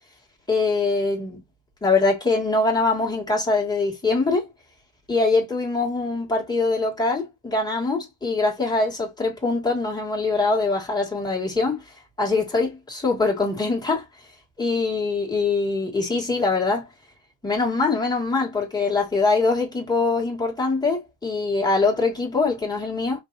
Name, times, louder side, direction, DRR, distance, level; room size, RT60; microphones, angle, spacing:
voice 1, 0.5-1.4 1.8-4.4 5.1-11.8 12.2-14.0 14.6-16.9 17.4-23.2, left 3 dB, 10° left, 2.3 m, -23 dB
5.3 x 3.4 x 2.8 m
supercardioid pair, 85°, 49 cm